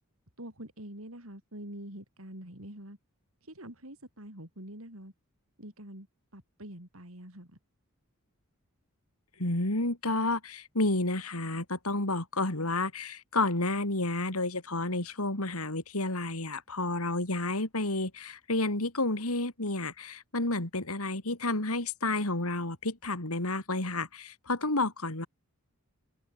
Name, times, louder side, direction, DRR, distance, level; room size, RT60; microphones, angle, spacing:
voice 1, 0.4-3.0 3.5-5.1 5.6-6.1 6.3-7.5, right 1 dB, 70° right, 7.8 m, -45 dB
voice 2, 9.4-25.3, left 2 dB, 80° left, 4.1 m, -30 dB
head